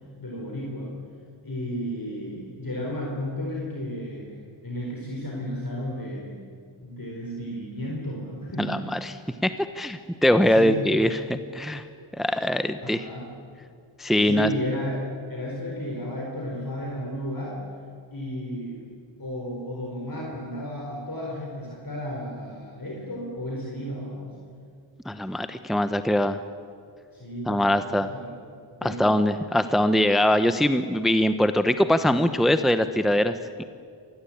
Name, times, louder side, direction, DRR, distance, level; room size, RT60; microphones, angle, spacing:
voice 1, 0.2-1.0 1.4-6.3 6.8-8.8 10.5-10.9 12.2-12.3 12.8-13.2 14.2-17.6 18.1-18.8 19.2-24.4 27.1-28.4 28.7-29.5, equal, 50° left, -2 dB, 4.5 m, -33 dB
voice 2, 8.6-9.1 9.4-9.5 9.7-11.8 12.2-13.0 14.0-14.5 25.1-26.4 27.5-28.1 28.8-33.6, left 1 dB, ahead, 10 dB, 0.9 m, -22 dB
26.5 x 20.0 x 8.7 m, 2.3 s
wide cardioid pair, 85°, 45 cm